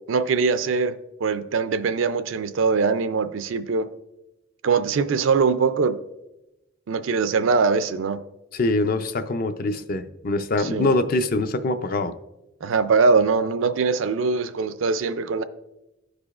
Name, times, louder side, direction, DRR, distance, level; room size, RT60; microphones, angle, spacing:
voice 1, 0.1-3.9 4.6-6.0 6.9-8.2 10.6-10.9 12.6-15.4, right 4 dB, 75° right, 0.4 m, -22 dB
voice 2, 8.5-12.1, left 2 dB, 45° left, 0.4 m, -24 dB
14.5 x 4.9 x 2.4 m
head